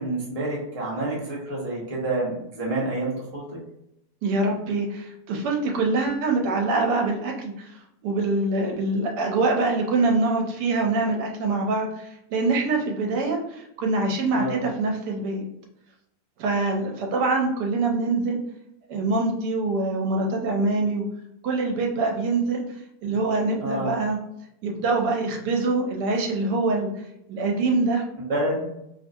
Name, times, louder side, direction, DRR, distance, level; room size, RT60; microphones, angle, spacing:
voice 1, 0.0-3.6 14.3-14.6 23.6-24.0 28.2-28.7, right 2 dB, 30° right, -5 dB, 0.8 m, -28 dB
voice 2, 4.2-7.7 8.0-11.9 12.3-15.4 16.4-18.4 18.9-21.0 21.4-22.6 23.0-24.2 24.6-26.9 27.3-28.0, right 3 dB, 80° right, 1 dB, 1.2 m, -24 dB
2.8 x 2.5 x 2.5 m, 0.80 s
omnidirectional pair, 1.8 m